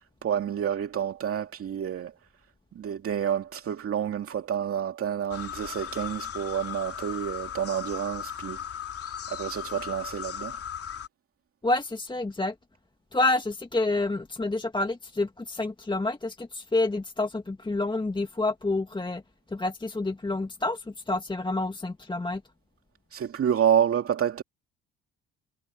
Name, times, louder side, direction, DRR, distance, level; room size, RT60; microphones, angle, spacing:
voice 1, 0.2-2.1 2.8-8.6 9.3-10.6 23.1-24.4, right 9 dB, 50° right, 2.4 m, -28 dB
sound 1, 5.3-11.1, left 8 dB, 50° left, 3.5 m, -37 dB
voice 2, 11.6-12.5 13.1-19.2 19.5-22.4, left 2 dB, 15° left, 1.8 m, -28 dB
hypercardioid pair, 60°, 29 cm